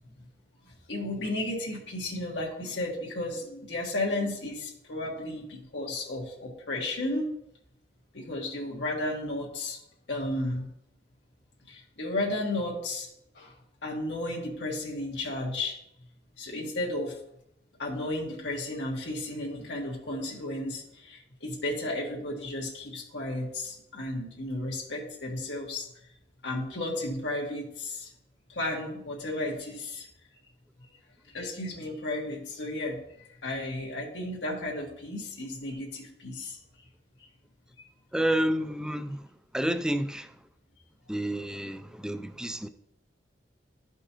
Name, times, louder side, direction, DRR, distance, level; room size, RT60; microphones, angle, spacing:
voice 1, 0.6-7.3 8.1-9.8 10.1-10.7 11.7-13.1 13.3-13.5 13.8-15.8 16.4-17.2 17.8-25.9 26.4-28.1 28.5-30.1 31.3-33.0 33.4-36.6, left 1 dB, 90° left, 1.6 m, -33 dB
voice 2, 38.1-39.3 39.5-40.4 41.1-42.7, right 1 dB, 5° right, 0.3 m, -29 dB
12.0 x 5.4 x 2.9 m
head